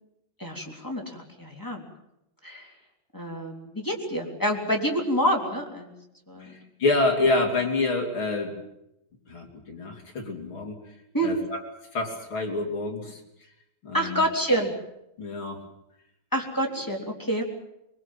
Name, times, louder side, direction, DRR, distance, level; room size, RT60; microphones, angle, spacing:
voice 1, 0.4-1.9 2.4-2.7 3.1-5.9 6.3-6.6 11.1-11.3 13.9-14.7 16.3-17.5, equal, 5° left, 0 dB, 2.3 m, -27 dB
voice 2, 6.4-8.5 9.3-10.8 11.2-11.6 11.9-13.2 13.8-14.2 15.2-15.6, left 2 dB, 30° left, 1 dB, 3.5 m, -27 dB
23.5 x 22.5 x 7.5 m, 0.84 s
omnidirectional pair, 5.7 m